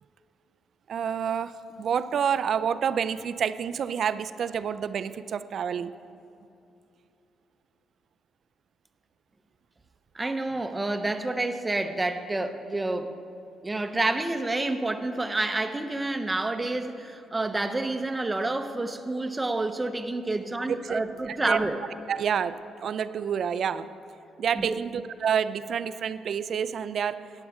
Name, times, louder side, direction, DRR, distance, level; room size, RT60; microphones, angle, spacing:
voice 1, 0.9-1.5 1.8-5.9 20.7-21.6 22.1-23.9 24.4-27.2, right 7 dB, 60° right, 13 dB, 0.4 m, -28 dB
voice 2, 10.1-13.2 13.6-21.8 24.5-24.8, right 2 dB, 20° right, 8 dB, 0.7 m, -29 dB
14.5 x 9.9 x 3.6 m, 2.7 s
cardioid pair, 90°, 0 cm